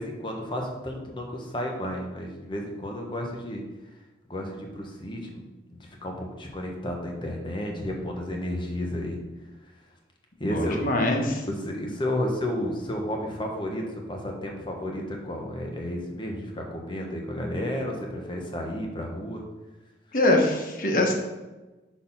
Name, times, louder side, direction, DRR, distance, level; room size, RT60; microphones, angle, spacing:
voice 1, 0.0-3.6 4.3-9.2 10.4-10.9 11.5-19.4, left 1 dB, 30° left, 1 dB, 1.1 m, -32 dB
voice 2, 10.4-11.4 20.1-21.1, left 1 dB, 50° left, 1 dB, 1.2 m, -23 dB
6.5 x 4.2 x 5.6 m, 1.1 s
head